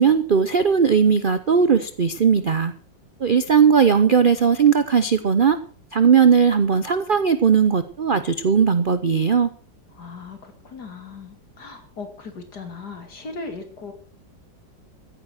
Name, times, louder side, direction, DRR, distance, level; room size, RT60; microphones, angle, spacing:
voice 1, 0.0-2.7 3.2-5.6 5.9-9.5, right 6 dB, 50° right, 12 dB, 0.6 m, -18 dB
voice 2, 9.9-13.9, left 4 dB, 60° left, 6 dB, 3.1 m, -38 dB
15.0 x 10.0 x 6.3 m, 0.43 s
omnidirectional pair, 2.0 m